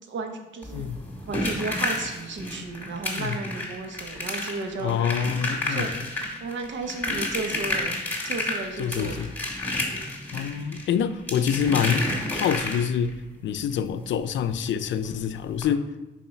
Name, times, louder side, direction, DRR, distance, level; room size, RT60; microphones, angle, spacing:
voice 1, 0.1-0.9 1.3-5.0 5.7-5.9 6.4-8.0 8.2-9.3, right 3 dB, 80° right, 5 dB, 1.0 m, -33 dB
sound 1, 0.6-13.1 14.6-14.7 15.0-15.1 15.5-15.6, left 2 dB, 10° left, 2.6 m, -31 dB
voice 2, 0.7-1.0 3.2-3.4 4.8-6.0 8.8-9.3 10.3-12.1 12.3-15.9, left 8 dB, 85° left, 12 dB, 0.4 m, -26 dB
5.6 x 4.8 x 5.6 m, 1.1 s
cardioid pair, 75°, 19 cm